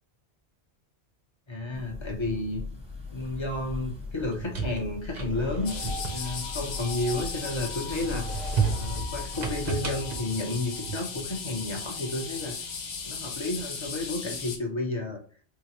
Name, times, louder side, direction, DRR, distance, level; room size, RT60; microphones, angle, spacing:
voice 1, 1.5-2.6 3.1-8.4 8.7-12.5 13.0-15.2, left 2 dB, 30° left, 1 dB, 0.6 m, -32 dB
sound 1, 1.7-9.7, left 4 dB, 5° right, 0.7 m, -39 dB
sound 2, 4.1-7.4 7.9-11.3, right 5 dB, 45° right, 0.8 m, -33 dB
sound 3, 5.7-14.6, left 4 dB, 90° left, 1.0 m, -37 dB
4.6 x 2.1 x 2.9 m, 0.43 s
omnidirectional pair, 1.2 m